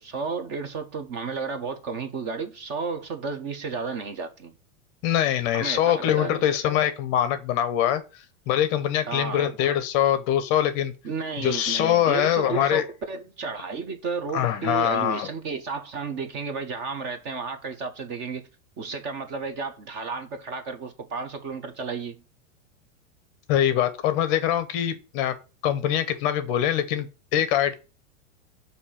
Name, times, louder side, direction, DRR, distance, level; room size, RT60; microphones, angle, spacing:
voice 1, 0.0-4.6 5.5-6.4 9.1-9.5 11.0-18.5 18.8-22.2, right 4 dB, 30° right, 0.6 m, -32 dB
voice 2, 5.0-10.9 11.4-12.8 14.3-15.3 23.5-25.3 25.6-27.1 27.3-27.7, left 11 dB, 35° left, 0.7 m, -23 dB
6.5 x 2.7 x 5.6 m
supercardioid pair, 150°, 41 cm